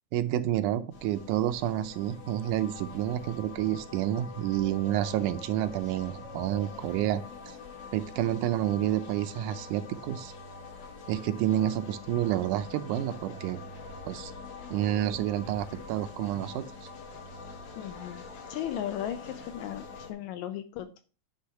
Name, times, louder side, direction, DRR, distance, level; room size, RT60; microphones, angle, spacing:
voice 1, 0.1-7.2 7.9-10.3 11.1-13.6 14.1-14.3 14.7-16.7, right 12 dB, 80° right, 11 dB, 2.0 m, -29 dB
sound 1, 0.9-20.1, left 4 dB, 65° left, 1.1 m, -45 dB
voice 2, 17.8-21.0, left 11 dB, 80° left, 9 dB, 1.7 m, -36 dB
9.7 x 3.5 x 5.6 m, 0.37 s
omnidirectional pair, 3.7 m